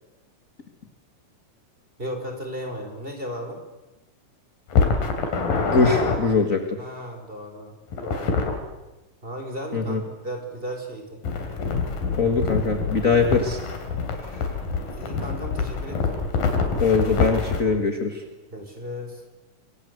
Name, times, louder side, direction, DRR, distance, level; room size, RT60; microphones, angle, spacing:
voice 1, 2.0-3.6 6.8-8.4 9.2-11.2 15.0-16.2 18.5-19.2, equal, 15° right, 4 dB, 4.5 m, -35 dB
sound 1, 4.7-6.2 7.9-8.6 11.2-17.6, left 4 dB, 85° left, 4.9 m, -25 dB
voice 2, 5.6-6.8 9.7-10.0 12.2-13.6 16.8-18.2, left 4 dB, 35° left, 6 dB, 1.6 m, -22 dB
26.5 x 23.5 x 8.1 m, 1.1 s
omnidirectional pair, 3.9 m